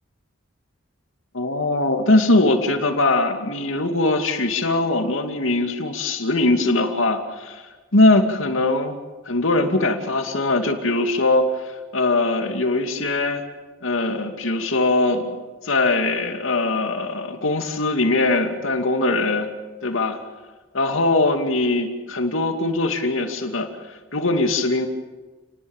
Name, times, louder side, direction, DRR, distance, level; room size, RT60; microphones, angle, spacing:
voice 1, 1.3-7.6 7.9-9.0 9.3-13.4 13.8-15.3 15.6-19.5 19.8-20.2 20.7-24.9, left 2 dB, 80° left, 5 dB, 2.5 m, -21 dB
30.0 x 19.0 x 7.3 m, 1.3 s
head